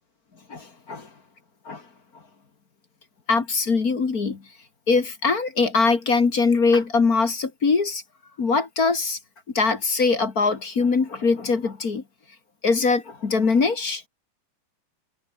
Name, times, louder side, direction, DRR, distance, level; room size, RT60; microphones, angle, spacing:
voice 1, 0.5-1.1 1.7-1.8 3.3-4.4 4.9-8.0 8.4-9.2 9.5-12.0 12.6-14.0, left 4 dB, 35° left, 1.7 m, -22 dB
omnidirectional pair, 4.1 m